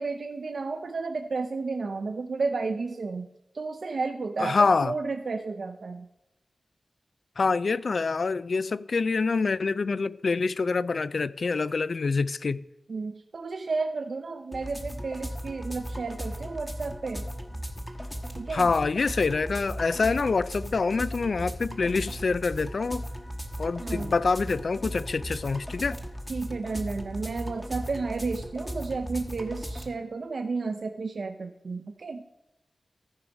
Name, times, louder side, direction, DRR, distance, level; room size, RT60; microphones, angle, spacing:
voice 1, 0.0-3.3 3.5-6.1 12.9-17.2 18.3-18.7 23.8-24.1 26.3-32.2, right 4 dB, 70° right, 0.6 m, -32 dB
voice 2, 4.4-4.9 7.4-12.6 18.5-23.0 23.6-26.0, left 4 dB, 65° left, 0.3 m, -26 dB
sound 1, 14.5-29.9, equal, 10° left, 1.2 m, -37 dB
14.0 x 4.9 x 5.2 m
wide cardioid pair, 90°, 0 cm